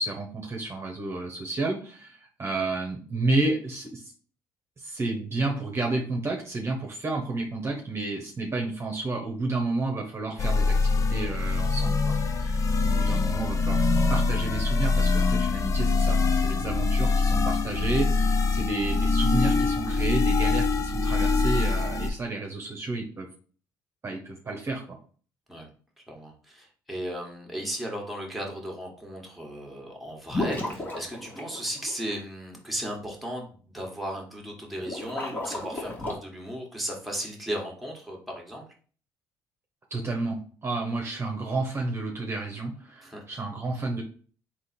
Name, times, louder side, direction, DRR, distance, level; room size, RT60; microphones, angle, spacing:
voice 1, 0.0-4.1 4.8-23.3 24.0-25.0 39.9-44.0, right 2 dB, 35° right, 0 dB, 1.0 m, -31 dB
sound 1, 10.4-22.1, left 3 dB, 40° left, 0.7 m, -24 dB
voice 2, 26.1-38.6 43.1-43.2, equal, ahead, 0 dB, 1.7 m, -36 dB
sound 2, 30.3-32.1 34.8-36.2, left 2 dB, 25° left, 1.8 m, -33 dB
3.7 x 3.0 x 4.4 m, 0.42 s
supercardioid pair, 70°, 8 cm